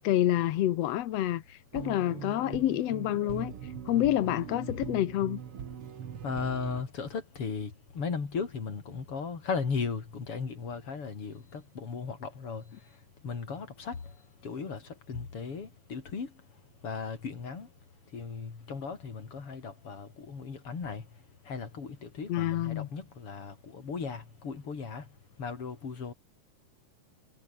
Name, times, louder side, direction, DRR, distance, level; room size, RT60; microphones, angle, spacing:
voice 1, 0.0-5.4 22.3-22.9, left 13 dB, 70° left, 1.6 m, -28 dB
sound 1, 1.7-6.8, right 8 dB, 45° right, 2.3 m, -41 dB
voice 2, 6.2-12.6 13.2-14.0 14.4-16.3 16.8-17.7 18.1-21.0 21.5-25.1 25.4-26.1, left 5 dB, 40° left, 4.2 m, -36 dB
omnidirectional pair, 4.1 m